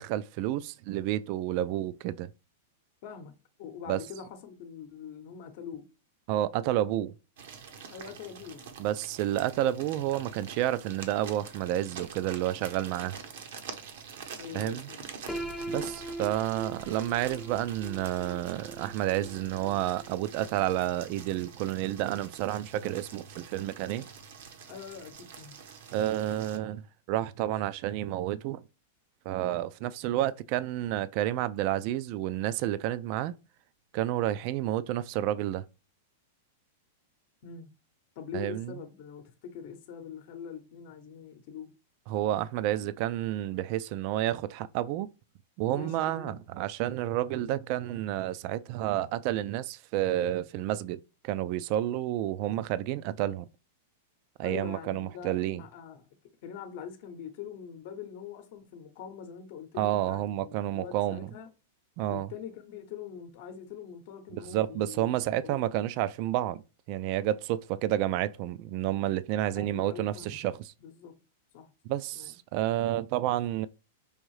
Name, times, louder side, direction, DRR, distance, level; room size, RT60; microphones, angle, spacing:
voice 1, 0.0-2.3 3.9-4.0 6.3-7.1 8.8-13.2 14.5-14.9 15.7-24.1 25.9-28.6 29.3-33.3 33.9-35.6 38.3-38.7 42.1-45.1 45.6-53.5 54.4-55.6 59.8-61.3 62.0-62.3 64.3-66.6 66.9-70.7 71.8-73.7, right 13 dB, 50° right, 0.3 m, -30 dB
voice 2, 3.0-3.3 3.6-5.9 7.9-8.9 14.3-15.0 15.7-16.0 24.7-25.6 37.4-37.7 38.2-41.7 45.7-46.4 54.4-56.1 56.4-61.5 62.1-65.7 69.5-70.4 70.8-71.2 71.5-71.7 72.2-72.4, left 7 dB, 55° left, 0.8 m, -43 dB
sound 1, 7.4-26.6, right 6 dB, 70° right, 0.8 m, -46 dB
Piano, 15.3-21.1, right 1 dB, 5° left, 0.6 m, -41 dB
4.8 x 2.6 x 3.1 m
hypercardioid pair, 130°, 0 cm